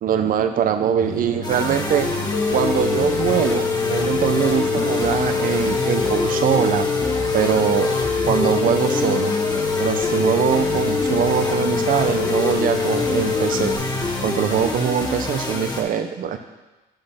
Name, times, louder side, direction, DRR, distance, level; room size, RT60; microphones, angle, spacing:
voice 1, 0.0-2.1 2.5-6.9 7.3-7.9 8.3-9.3 9.8-13.8 14.2-16.4, right 9 dB, 55° right, 9 dB, 0.8 m, -22 dB
sound 1, 1.0-14.7, left 1 dB, 45° left, 1.3 m, -34 dB
sound 2, 1.4-15.8, left 2 dB, 25° left, 1.5 m, -27 dB
sound 3, 2.3-13.7, left 6 dB, 85° left, 1.1 m, -24 dB
12.0 x 4.1 x 5.8 m, 1.1 s
cardioid pair, 110°, 17 cm